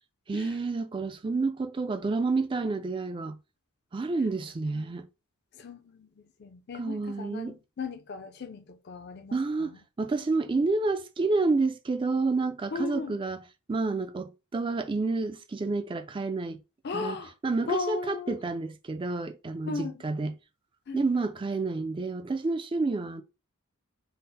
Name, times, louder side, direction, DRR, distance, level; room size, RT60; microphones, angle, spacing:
voice 1, 0.3-3.4 3.9-5.1 6.7-7.6 9.3-13.4 13.7-16.6 16.9-20.3 20.9-23.2, right 3 dB, 25° right, 0.3 m, -29 dB
voice 2, 5.5-9.8 12.7-13.2 16.8-17.3 17.7-18.4 19.6-20.0 20.9-21.0, left 4 dB, 50° left, 0.4 m, -37 dB
3.8 x 2.0 x 4.0 m
head